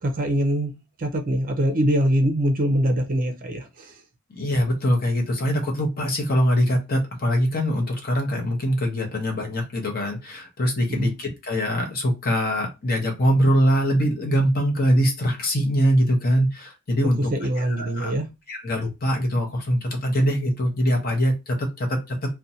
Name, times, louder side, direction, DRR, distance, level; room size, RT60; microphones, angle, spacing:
voice 1, 0.0-0.7 1.0-4.0 10.9-11.1 17.2-18.3, equal, 40° right, 0.5 m, -23 dB
voice 2, 4.3-18.1 18.5-22.2, equal, 40° left, 0.7 m, -23 dB
2.5 x 2.1 x 2.7 m
head